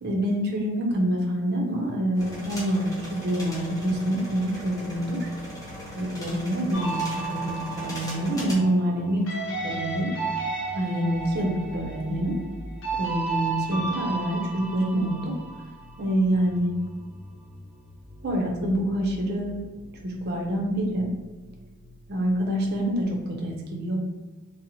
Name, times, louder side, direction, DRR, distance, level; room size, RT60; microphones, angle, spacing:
voice 1, 0.0-5.3 6.0-9.3 9.6-10.2 10.7-12.4 12.9-15.3 16.0-16.7 18.2-19.6 20.0-21.1 22.1-24.0, right 1 dB, 50° right, 0 dB, 0.5 m, -26 dB
sound 1, 2.2-8.5, left 1 dB, 15° left, 0.7 m, -39 dB
sound 2, 6.7-16.1, right 4 dB, 65° left, 0.6 m, -33 dB
sound 3, 9.4-23.0, left 1 dB, 5° right, 0.9 m, -46 dB
2.7 x 2.0 x 2.7 m, 1.2 s
head